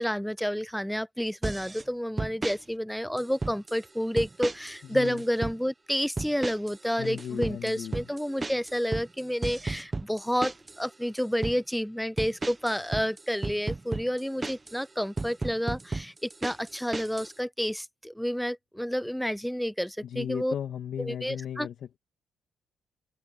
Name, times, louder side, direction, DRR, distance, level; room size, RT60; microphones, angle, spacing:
voice 1, 0.0-20.5 21.0-21.7, equal, ahead, 0.4 m, -30 dB
sound 1, 1.4-1.8 2.2-2.6 3.2-3.8 4.2-4.8 5.1-5.6 6.2-6.8 7.0-10.8 11.2-11.6 12.2-14.8 15.2-17.3, right 3 dB, 20° right, 1.0 m, -34 dB
voice 2, 4.8-5.2 7.0-8.1 20.0-21.7, left 9 dB, 65° left, 2.1 m, -36 dB
open air
cardioid pair, 90°, 0 cm